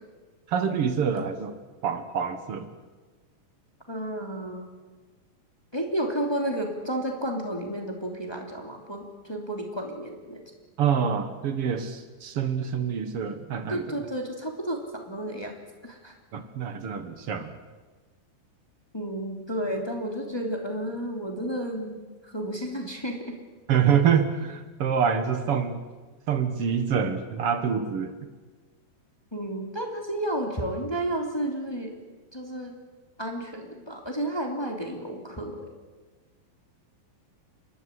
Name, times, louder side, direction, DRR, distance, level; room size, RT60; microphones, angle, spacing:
voice 1, 0.5-1.6 1.8-2.7 10.8-13.9 16.3-17.5 23.7-25.8 26.3-28.1, right 7 dB, 55° right, 9 dB, 1.8 m, -26 dB
voice 2, 3.9-4.7 5.7-10.4 13.7-15.5 15.8-16.1 18.9-23.4 29.3-32.0 32.3-32.8 33.2-35.7, right 1 dB, 10° left, 2 dB, 2.5 m, -32 dB
29.5 x 12.5 x 10.0 m, 1.3 s
omnidirectional pair, 4.2 m